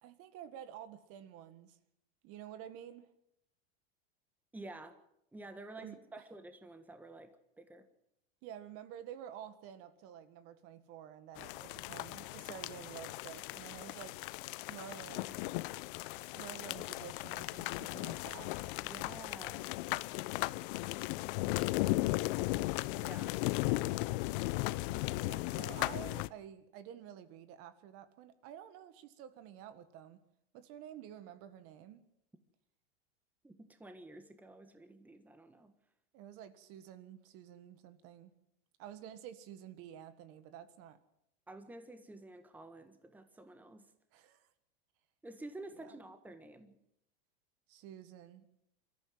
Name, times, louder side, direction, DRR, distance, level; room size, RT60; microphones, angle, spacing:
voice 1, 0.0-1.8 2.2-3.1 5.8-6.2 8.4-14.2 14.7-15.5 16.4-18.5 25.2-30.2 30.5-32.0 36.1-38.3 38.8-41.0 44.1-44.5 45.8-46.0 47.7-48.5, right 10 dB, 45° right, 12 dB, 1.7 m, -50 dB
voice 2, 4.5-5.0 5.3-7.9 18.8-19.7 22.9-23.4 33.4-35.7 41.5-43.9 45.2-46.8, right 2 dB, 5° right, 9 dB, 1.4 m, -50 dB
sound 1, 11.4-26.3, left 20 dB, 55° left, 0.7 m, -36 dB
23.0 x 14.5 x 7.9 m, 0.79 s
supercardioid pair, 130°, 31 cm